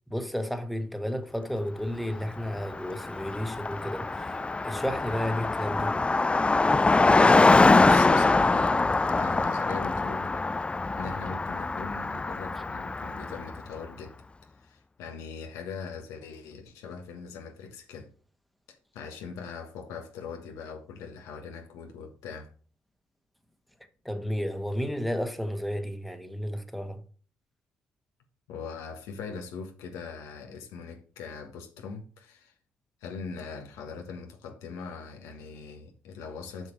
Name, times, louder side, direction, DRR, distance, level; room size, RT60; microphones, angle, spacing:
voice 1, 0.1-6.0 24.0-27.0, equal, ahead, 1.5 m, -32 dB
Car passing by, 2.3-2.4 2.6-13.6, left 3 dB, 20° left, 0.4 m, -24 dB
voice 2, 7.7-8.7 9.1-10.4 11.0-14.1 14.5-18.1 18.9-22.5 28.5-32.5 33.0-36.7, left 5 dB, 80° left, 1.4 m, -41 dB
6.9 x 6.1 x 4.7 m
hypercardioid pair, 50°, 5 cm